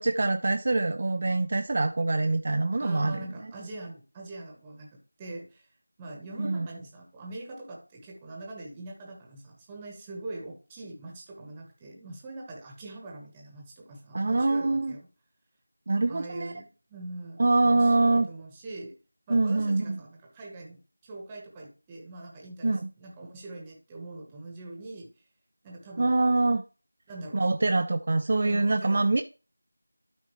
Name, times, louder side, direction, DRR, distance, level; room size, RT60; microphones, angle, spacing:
voice 1, 0.0-3.3 6.4-6.7 14.1-14.9 15.9-16.5 17.4-18.3 19.3-20.0 22.6-22.9 26.0-26.6 27.3-29.2, right 2 dB, 35° right, 0.4 m, -24 dB
voice 2, 2.8-5.7 6.0-15.1 16.1-19.0 19.3-25.1 25.6-26.2 27.1-27.5 28.4-29.0, right 2 dB, 10° right, 1.1 m, -43 dB
12.0 x 4.3 x 3.0 m
figure-of-eight pair, 170°, 0 cm